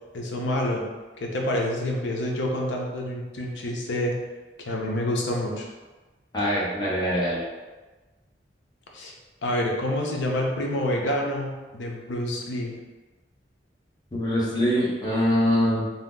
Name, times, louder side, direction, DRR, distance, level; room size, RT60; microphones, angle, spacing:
voice 1, 0.1-0.8 1.2-4.1 4.6-5.7 8.9-9.1 9.4-12.8, left 1 dB, 85° left, -1 dB, 0.6 m, -27 dB
voice 2, 6.3-7.4 14.1-15.9, equal, 25° left, -7 dB, 0.8 m, -23 dB
2.7 x 2.0 x 3.5 m, 1.2 s
head